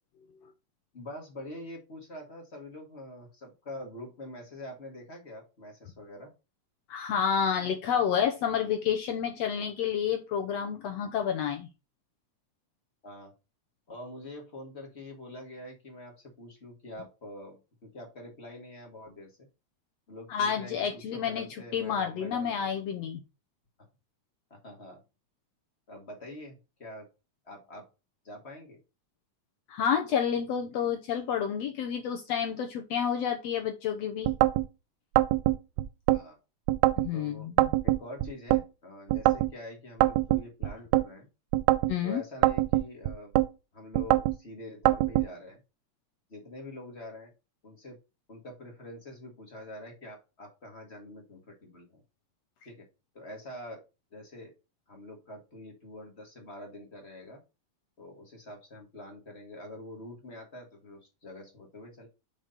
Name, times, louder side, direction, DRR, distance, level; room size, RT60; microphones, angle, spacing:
voice 1, 0.9-6.3 13.0-13.3 13.9-19.5 20.1-22.7 24.5-25.0 25.9-27.1 27.4-27.9 28.2-28.8 36.1-36.4 37.1-37.5 37.8-41.3 42.0-43.3 43.7-45.6 46.3-47.3 47.6-48.0 48.3-52.0 52.6-52.9 53.1-53.8 54.1-54.5 54.9-57.4 58.0-62.1, left 1 dB, 25° left, 1 dB, 1.6 m, -45 dB
voice 2, 6.9-11.7 20.3-21.5 21.7-23.2 29.7-34.3 37.0-37.7 41.9-42.2, left 8 dB, 70° left, 4 dB, 1.7 m, -29 dB
sound 1, 34.2-34.7 35.2-36.2 36.7-37.1 37.6-38.6 39.1-39.5 40.0-41.1 41.5-41.9 42.4-43.5 43.9-44.4 44.9-45.3, right 16 dB, 80° right, 1.7 m, -24 dB
5.7 x 4.9 x 5.2 m, 0.28 s
omnidirectional pair, 3.5 m